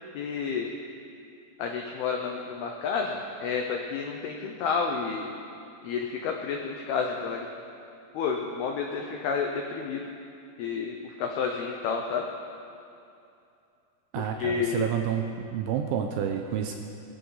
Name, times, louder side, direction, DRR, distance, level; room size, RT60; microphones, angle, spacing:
voice 1, 0.1-0.7 1.6-5.3 5.8-7.5 8.1-10.0 10.6-12.2 14.2-14.9, left 5 dB, 90° left, 2 dB, 2.2 m, -30 dB
voice 2, 14.1-16.8, right 8 dB, 80° right, 4 dB, 2.8 m, -29 dB
22.5 x 14.0 x 4.0 m, 2.6 s
omnidirectional pair, 5.9 m